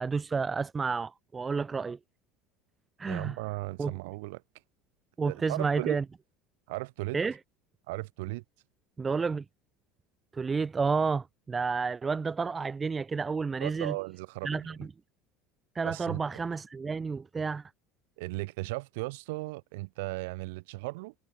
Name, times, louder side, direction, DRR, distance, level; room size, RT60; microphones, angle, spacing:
voice 1, 0.0-2.0 3.0-3.4 3.8-3.9 5.2-6.0 7.1-7.4 9.0-9.4 10.3-14.0 14.4-14.8 15.7-17.7, right 5 dB, 20° right, 0.8 m, -30 dB
voice 2, 3.1-4.4 5.3-6.0 6.7-7.2 7.9-8.4 13.6-14.7 15.8-16.4 18.2-21.1, right 23 dB, 80° right, 1.3 m, -36 dB
supercardioid pair, 100°, 0 cm